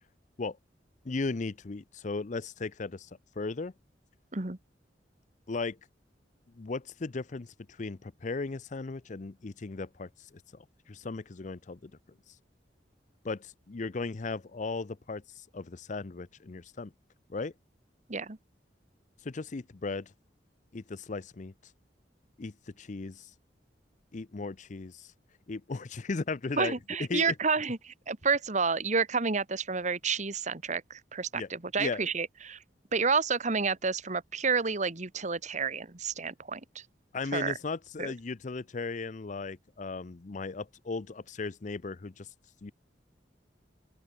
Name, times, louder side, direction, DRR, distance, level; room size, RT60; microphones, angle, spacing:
voice 1, 1.0-3.1 3.4-3.7 5.5-5.8 6.6-10.1 10.5-11.9 13.2-16.9 17.3-17.5 19.2-20.1 20.7-21.5 22.4-23.3 24.1-25.1 25.5-26.7 27.1-27.3 31.3-31.5 31.8-32.1 37.1-42.3 42.6-42.7, left 3 dB, 45° left, 0.6 m, -36 dB
voice 2, 26.6-32.6 32.9-36.8 37.3-37.5 38.0-38.1, right 5 dB, 45° right, 1.5 m, -30 dB
open air
head